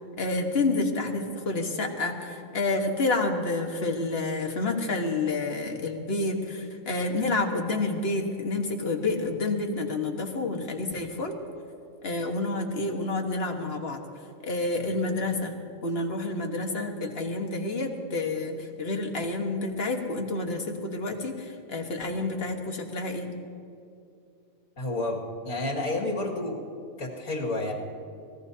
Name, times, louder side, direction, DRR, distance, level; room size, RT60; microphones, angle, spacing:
voice 1, 0.2-11.4 12.0-14.0 14.4-15.5 15.8-23.3, left 2 dB, 45° left, 3 dB, 1.5 m, -29 dB
voice 2, 24.8-26.6 27.0-27.7, left 2 dB, 70° left, -2 dB, 2.5 m, -30 dB
24.5 x 18.5 x 2.8 m, 2.6 s
omnidirectional pair, 1.5 m